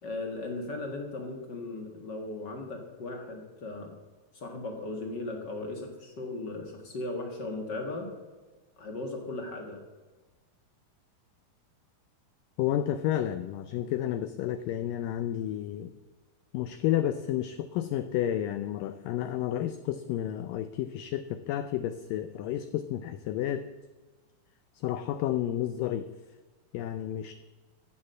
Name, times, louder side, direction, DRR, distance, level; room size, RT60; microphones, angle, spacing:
voice 1, 0.0-3.9 4.3-8.1 8.8-9.8, left 2 dB, 55° left, 3 dB, 1.1 m, -37 dB
voice 2, 12.6-15.9 16.5-23.7 24.8-26.1 26.7-27.3, left 11 dB, 80° left, 11 dB, 2.0 m, -31 dB
15.0 x 7.3 x 7.5 m, 1.3 s
omnidirectional pair, 4.5 m